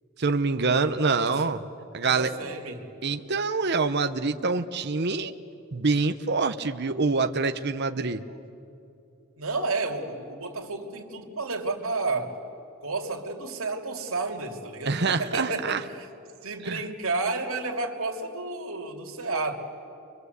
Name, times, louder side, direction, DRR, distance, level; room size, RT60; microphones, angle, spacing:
voice 1, 0.2-1.6 1.9-2.3 3.0-5.3 5.7-8.2 14.9-15.8 16.6-16.8, right 4 dB, 50° right, 8 dB, 0.9 m, -25 dB
voice 2, 1.1-1.4 2.0-2.9 9.4-12.4 12.8-16.1 16.4-19.6, right 3 dB, 65° right, 1 dB, 2.8 m, -31 dB
29.5 x 24.5 x 8.1 m, 2.7 s
head